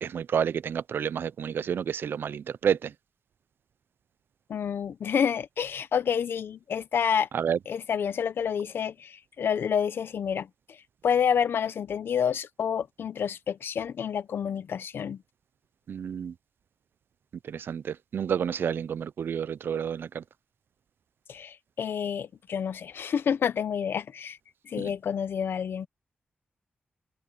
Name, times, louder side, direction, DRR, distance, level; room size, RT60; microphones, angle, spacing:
voice 1, 0.0-2.9 7.3-7.6 15.9-16.3 17.4-20.2, right 8 dB, 75° right, 0.5 m, -29 dB
voice 2, 4.5-7.3 7.7-10.8 11.0-15.2 21.3-24.4 24.6-25.9, left 7 dB, 85° left, 0.8 m, -29 dB
wide cardioid pair, 180°, 4 cm